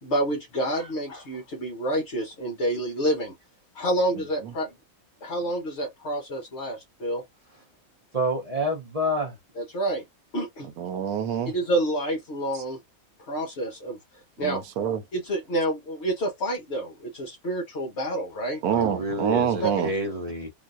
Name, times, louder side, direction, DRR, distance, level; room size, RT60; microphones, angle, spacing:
voice 1, 0.0-3.3 3.7-4.8 5.2-7.2 9.6-10.0 10.3-10.7 11.5-12.8 13.2-14.0 14.4-14.6 15.1-18.6 19.6-19.8, right 1 dB, 50° left, 1.3 m, -28 dB
voice 2, 4.1-4.5 10.8-11.5 12.5-12.6 14.4-15.0 18.6-19.9, right 8 dB, 85° right, 1.1 m, -27 dB
voice 3, 8.1-9.4 18.7-20.5, equal, 35° right, 0.6 m, -28 dB
3.8 x 2.3 x 2.5 m
omnidirectional pair, 1.5 m